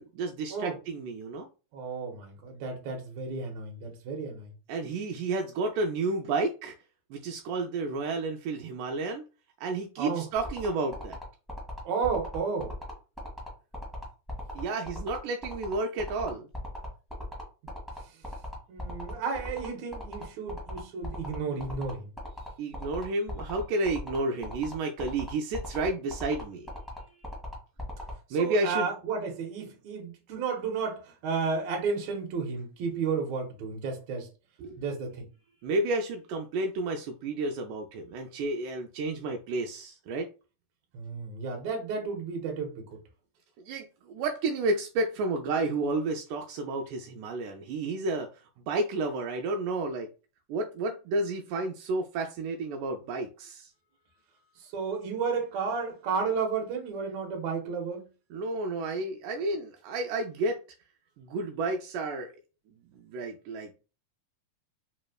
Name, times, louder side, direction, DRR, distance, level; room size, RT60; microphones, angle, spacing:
voice 1, 0.0-1.5 4.7-6.8 7.1-9.2 9.6-11.2 14.5-16.5 22.6-27.2 28.3-28.9 34.6-34.8 35.6-40.3 43.6-50.1 50.5-53.7 58.3-60.6 61.2-62.3 62.9-63.8, right 2 dB, 85° right, 2.1 m, -31 dB
voice 2, 1.7-4.5 10.0-10.2 11.9-12.7 18.7-22.1 28.4-34.3 34.8-35.3 40.9-43.0 54.7-58.0, right 5 dB, 65° right, 2.2 m, -32 dB
sound 1, 10.4-28.1, left 1 dB, ahead, 0.4 m, -40 dB
5.0 x 3.1 x 2.3 m
omnidirectional pair, 3.7 m